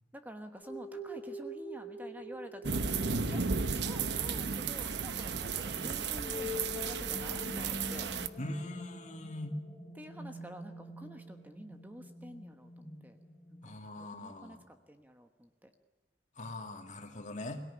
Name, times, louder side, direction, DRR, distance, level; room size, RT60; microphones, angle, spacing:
voice 1, 0.1-3.4 3.8-8.1 10.0-13.2 13.5-13.6 14.0-15.7, equal, 10° right, 6 dB, 1.2 m, -49 dB
sound 1, 0.6-13.8, left 1 dB, 10° left, 4.9 m, -45 dB
sound 2, 2.6-8.3, right 5 dB, 75° right, 0.9 m, -34 dB
voice 2, 8.4-9.6 13.6-14.6 16.4-17.6, left 1 dB, 45° left, 4 dB, 2.4 m, -41 dB
23.0 x 17.5 x 10.0 m, 1.2 s
head